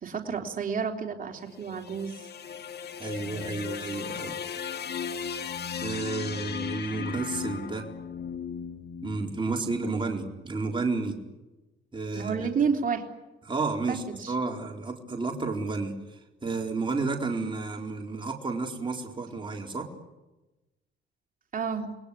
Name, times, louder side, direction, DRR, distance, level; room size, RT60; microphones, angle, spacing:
voice 1, 0.0-2.3 12.1-13.1 13.9-14.3 21.5-21.9, right 6 dB, 45° right, 2 dB, 3.6 m, -30 dB
sound 1, 1.4-9.7, left 7 dB, 55° left, 1.9 m, -36 dB
voice 2, 3.0-4.4 5.8-7.9 9.0-11.2 11.9-12.5 13.5-19.9, right 3 dB, 25° right, 1 dB, 4.3 m, -31 dB
28.0 x 20.5 x 8.5 m, 1.0 s
cardioid pair, 90°, 20 cm